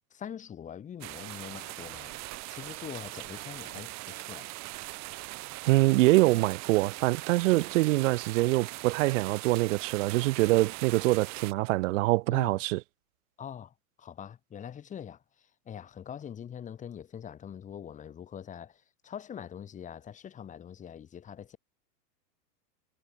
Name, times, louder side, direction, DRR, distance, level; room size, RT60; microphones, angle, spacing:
voice 1, 0.1-2.2 2.5-4.5 12.3-12.6 13.4-15.2 15.6-21.6, left 8 dB, 15° left, 1.4 m, -43 dB
sound 1, 1.0-11.5, right 20 dB, 35° right, 2.5 m, -41 dB
voice 2, 5.7-12.8, right 20 dB, 50° right, 1.0 m, -24 dB
hypercardioid pair, 140°, 49 cm